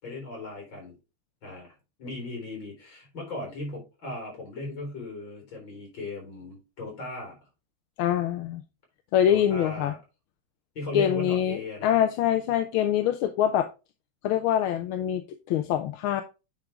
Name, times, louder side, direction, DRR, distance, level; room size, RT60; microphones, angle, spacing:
voice 1, 0.0-0.9 1.4-1.7 2.0-7.4 9.3-10.0 10.7-12.0, left 2 dB, 65° left, 4.5 m, -37 dB
voice 2, 8.0-8.6 9.1-9.9 10.9-13.7 14.2-16.2, left 10 dB, 85° left, 1.5 m, -24 dB
8.9 x 4.6 x 3.5 m
omnidirectional pair, 2.3 m